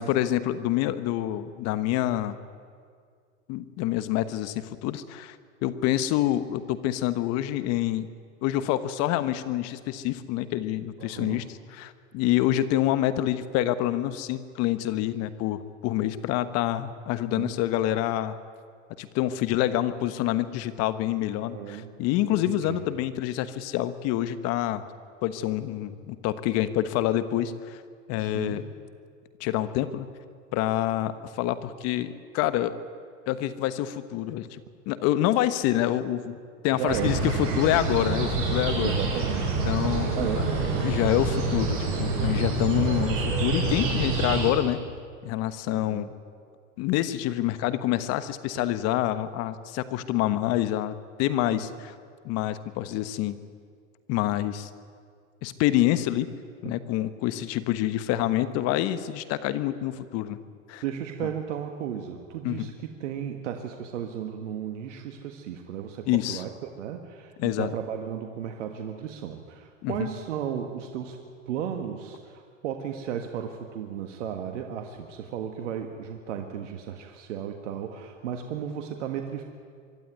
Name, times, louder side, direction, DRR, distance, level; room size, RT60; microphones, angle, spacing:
voice 1, 0.0-2.4 3.5-5.4 5.6-8.1 8.4-18.4 19.0-24.8 25.2-27.8 28.1-28.6 29.4-30.1 30.5-32.7 33.3-34.6 34.9-36.4 36.6-38.9 39.6-40.4 40.8-44.8 45.2-46.1 46.8-50.9 51.2-51.9 52.2-53.4 54.1-54.7 55.4-56.3 56.6-60.4 60.7-60.8 61.2-61.3 62.4-62.7 66.1-66.4 67.4-67.7 69.8-70.1, left 13 dB, 40° left, 13 dB, 1.2 m, -27 dB
voice 2, 11.0-11.5 17.2-17.5 21.4-21.9 22.5-22.8 28.2-28.6 36.7-37.2 38.8-40.9 45.7-46.1 51.5-51.6 56.6-56.7 60.8-71.2 71.5-79.4, right 9 dB, 70° right, 4 dB, 1.7 m, -35 dB
sound 1, 36.9-44.5, right 3 dB, 35° right, 5.9 m, -27 dB
24.0 x 12.5 x 9.4 m, 2.1 s
hypercardioid pair, 120°, 38 cm